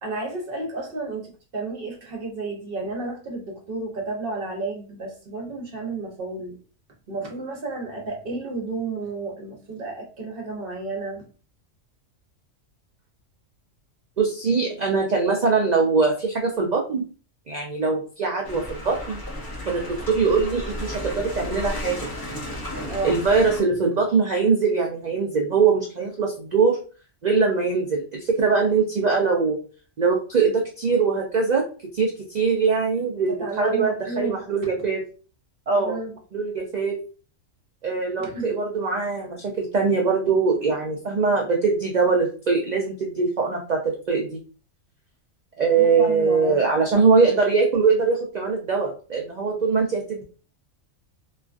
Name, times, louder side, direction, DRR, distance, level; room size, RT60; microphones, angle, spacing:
voice 1, 0.0-6.6 7.1-11.3 22.9-23.2 33.3-34.4 35.7-36.1 38.2-38.5 45.8-46.6, right 3 dB, 50° right, 1 dB, 0.9 m, -32 dB
voice 2, 14.2-17.0 17.5-19.2 19.7-22.0 23.0-26.8 27.2-29.6 30.0-31.6 31.9-35.0 35.7-36.0 36.3-36.9 37.8-44.4 45.6-50.2, right 4 dB, 90° right, 0 dB, 0.3 m, -22 dB
sound 1, 18.4-23.6, left 1 dB, 25° left, 0.6 m, -33 dB
3.1 x 2.3 x 2.4 m, 0.38 s
omnidirectional pair, 1.4 m